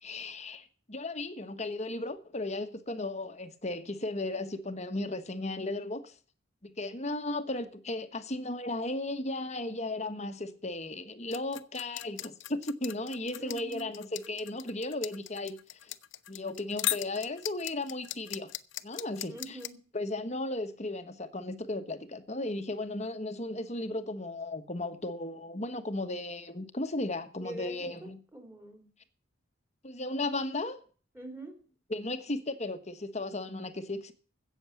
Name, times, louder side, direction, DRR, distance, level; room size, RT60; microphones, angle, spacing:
voice 1, 0.0-6.1 6.6-15.9 16.3-18.5 18.8-19.6 19.9-28.2 29.8-30.8 31.9-34.1, left 2 dB, 35° left, 1.3 m, -35 dB
sound 1, 11.3-19.7, left 15 dB, 65° left, 0.7 m, -37 dB
voice 2, 13.4-13.9 19.3-19.8 27.4-28.9 31.1-31.6, right 2 dB, 10° right, 2.9 m, -44 dB
16.0 x 7.1 x 7.1 m
head